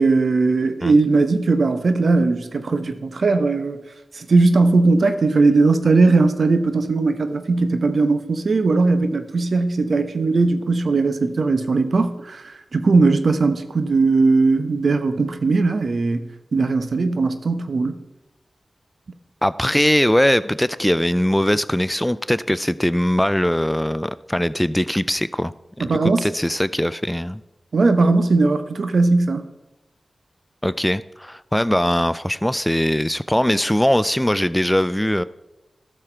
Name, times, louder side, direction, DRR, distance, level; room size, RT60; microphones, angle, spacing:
voice 1, 0.0-3.8 4.1-16.2 16.5-18.0 25.8-26.2 27.7-29.4, right 3 dB, 70° right, 0.8 m, -18 dB
voice 2, 19.4-25.5 25.8-27.4 30.6-35.2, equal, 10° left, 0.3 m, -21 dB
12.5 x 6.6 x 4.4 m
cardioid pair, 50°, 0 cm